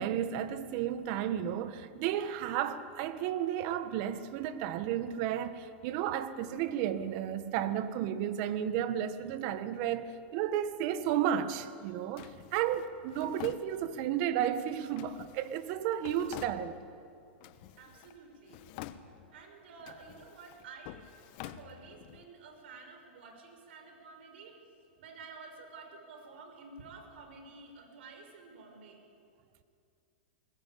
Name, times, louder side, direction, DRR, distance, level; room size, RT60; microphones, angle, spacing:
voice 1, 0.0-16.8, right 10 dB, 50° right, 1.4 m, -33 dB
Drawer open or close, 12.2-14.2 15.0-17.0 17.4-18.2 18.5-19.4 19.8-22.2, left 13 dB, 50° left, 1.1 m, -48 dB
voice 2, 17.8-18.6 19.3-21.1 21.4-24.6 25.0-29.0, right 4 dB, 70° right, 5.7 m, -51 dB
20.5 x 20.0 x 8.6 m
hypercardioid pair, 130°, 6 cm